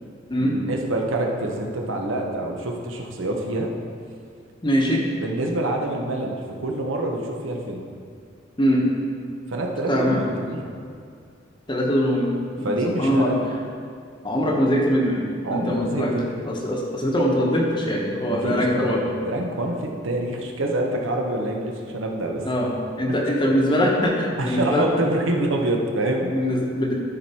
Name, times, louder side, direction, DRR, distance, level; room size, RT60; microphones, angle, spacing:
voice 1, 0.4-3.7 5.2-7.8 9.5-10.6 12.6-13.4 15.4-16.4 18.3-18.9 19.3-22.7 24.4-26.3, right 1 dB, 75° right, 1 dB, 1.0 m, -26 dB
voice 2, 4.6-5.0 8.6-8.9 9.9-10.2 11.7-13.3 14.2-16.1 16.4-19.0 22.4-22.7 23.0-24.9 26.3-26.9, equal, 25° left, -1 dB, 1.0 m, -22 dB
12.5 x 4.6 x 4.3 m, 2.3 s
head